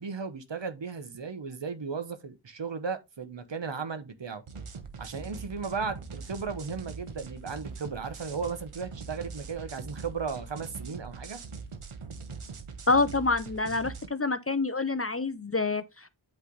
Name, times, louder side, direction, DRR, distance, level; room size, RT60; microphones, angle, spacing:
voice 1, 0.0-4.4 5.0-11.4, right 5 dB, 60° right, 1.0 m, -35 dB
sound 1, 4.5-14.1, right 4 dB, 80° right, 1.0 m, -42 dB
voice 2, 12.9-16.1, left 3 dB, 30° left, 0.6 m, -27 dB
8.5 x 3.4 x 3.9 m
wide cardioid pair, 60°, 50 cm